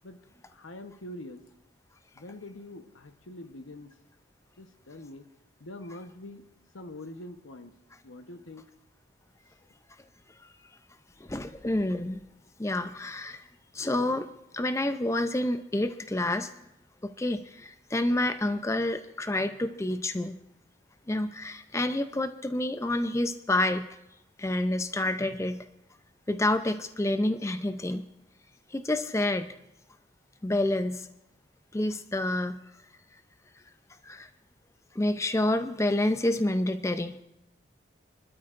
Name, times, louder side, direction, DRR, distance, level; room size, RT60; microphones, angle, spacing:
voice 1, 0.5-1.4 2.1-3.9 4.6-5.2 5.6-6.4 6.7-7.7 8.0-8.6, left 1 dB, 90° left, 8 dB, 1.0 m, -44 dB
voice 2, 11.2-12.2 12.6-13.5 13.7-16.5 17.0-20.4 21.1-23.9 24.4-25.7 26.3-28.0 28.7-29.5 30.4-31.1 31.7-32.6 34.0-34.3 34.9-37.2, left 1 dB, 15° left, 9 dB, 0.4 m, -28 dB
29.5 x 12.5 x 2.5 m, 0.86 s
head